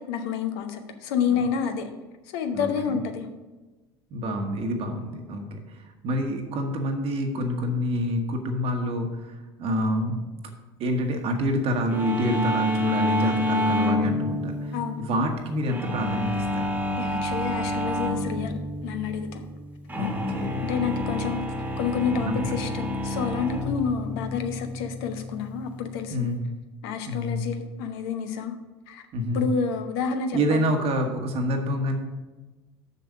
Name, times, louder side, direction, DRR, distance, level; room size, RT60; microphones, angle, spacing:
voice 1, 0.0-1.9 2.3-3.3 14.7-15.0 17.0-18.5 18.8-19.4 20.6-21.5 21.8-26.3 26.8-28.5 28.9-29.0 29.3-30.7, left 6 dB, 65° left, 7 dB, 0.9 m, -29 dB
voice 2, 2.5-3.0 4.1-10.2 10.8-16.6 20.0-20.6 22.2-22.4 26.1-26.4 27.1-27.4 29.1-29.4 30.3-32.0, equal, 45° right, 3 dB, 1.3 m, -27 dB
sound 1, 11.9-26.4, left 1 dB, 10° right, 1.5 m, -29 dB
6.8 x 6.1 x 6.2 m, 1.2 s
figure-of-eight pair, 65°, 14 cm